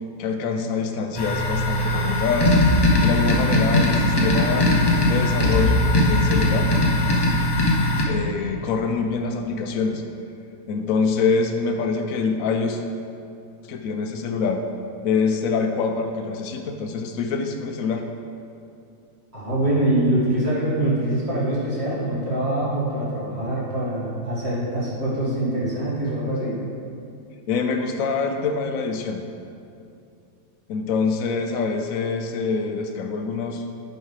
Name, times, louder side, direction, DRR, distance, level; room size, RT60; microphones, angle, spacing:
voice 1, 0.2-2.5 3.0-4.7 5.1-6.7 8.1-10.0 10.7-12.8 13.6-14.6 15.0-18.0 27.5-29.2 30.7-33.6, left 4 dB, 70° left, 5 dB, 1.0 m, -25 dB
sound 1, 1.1-8.0, left 1 dB, 25° left, 0.6 m, -19 dB
voice 2, 19.3-26.6, right 1 dB, 45° right, -8 dB, 2.1 m, -24 dB
9.0 x 5.5 x 3.2 m, 2.6 s
omnidirectional pair, 1.5 m